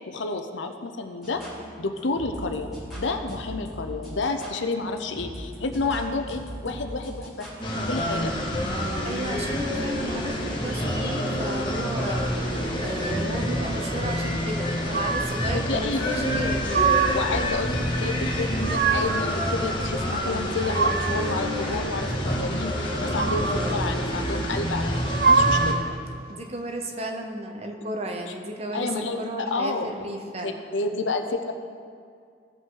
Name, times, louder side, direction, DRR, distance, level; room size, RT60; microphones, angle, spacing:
voice 1, 0.1-1.4 1.8-8.3 15.5-16.0 17.1-25.8 28.7-29.2 29.5-31.5, left 3 dB, 80° left, 6 dB, 0.7 m, -30 dB
sound 1, 1.2-7.9, equal, ahead, 2.5 m, -39 dB
sound 2, 7.6-25.7, equal, 25° left, 1.2 m, -27 dB
voice 2, 9.0-12.3 12.8-17.0 26.3-30.6, right 1 dB, 35° right, 3 dB, 0.9 m, -33 dB
sound 3, 14.9-15.5 16.3-17.4 18.3-19.3 20.3-21.4 22.9-23.8 24.9-25.9, right 5 dB, 50° right, 0.4 m, -25 dB
16.0 x 5.4 x 3.8 m, 2.3 s
head